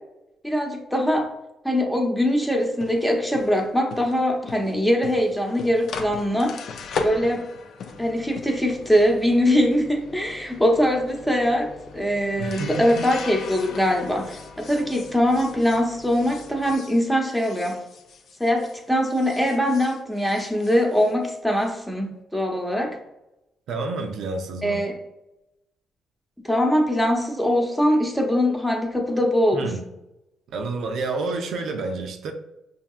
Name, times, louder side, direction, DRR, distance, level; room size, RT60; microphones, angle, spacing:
voice 1, 0.4-1.3 1.6-6.6 7.0-7.5 8.0-17.8 18.4-23.0 24.6-24.9 26.4-29.7, equal, 5° left, 0.8 m, -22 dB
sound 1, 2.6-18.8 19.1-21.7, left 4 dB, 65° left, 0.5 m, -38 dB
voice 2, 12.4-13.1 23.7-24.9 29.5-29.8 30.5-32.3, right 3 dB, 75° right, 0.5 m, -29 dB
5.7 x 2.7 x 2.4 m
cardioid pair, 90°, 0 cm